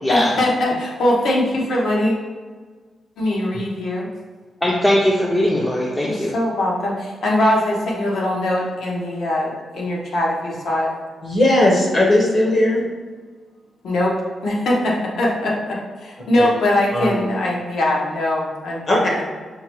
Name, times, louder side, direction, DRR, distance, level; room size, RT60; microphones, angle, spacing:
voice 1, 0.1-2.1 3.2-4.1 6.1-10.9 13.8-14.1 14.4-19.2, left 1 dB, 75° left, -3 dB, 0.9 m, -21 dB
voice 2, 4.6-6.3, left 1 dB, 15° left, -4 dB, 0.5 m, -19 dB
voice 3, 11.2-12.8 16.4-16.5 16.9-17.2 18.9-19.0, left 1 dB, 45° left, -2 dB, 0.8 m, -17 dB
5.6 x 2.2 x 3.0 m, 1.5 s
wide cardioid pair, 125°, 0 cm